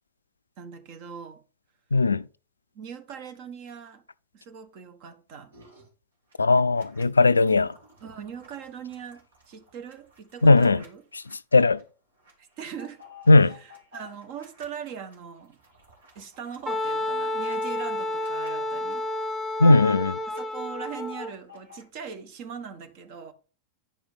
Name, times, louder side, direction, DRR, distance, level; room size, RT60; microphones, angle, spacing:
voice 1, 0.6-1.4 2.7-4.0 4.3-5.5 8.0-11.0 12.6-13.0 13.6-15.6 16.1-19.1 20.3-23.3, right 7 dB, 45° right, 1.3 m, -40 dB
voice 2, 1.9-2.3 6.4-7.7 10.4-10.8 11.1-11.2 11.5-11.8 13.3-13.6 19.6-20.2, left 3 dB, 80° left, 0.3 m, -18 dB
sound 1, 5.5-5.9 6.3-11.3 11.8-11.9 12.2-14.6 15.1-19.9 20.2-21.8, left 4 dB, 65° right, 2.7 m, -54 dB
Wind instrument woodwind instrument, 16.7-21.3, left 1 dB, 5° left, 1.2 m, -30 dB
9.9 x 5.0 x 5.5 m
figure-of-eight pair, 90°, 0 cm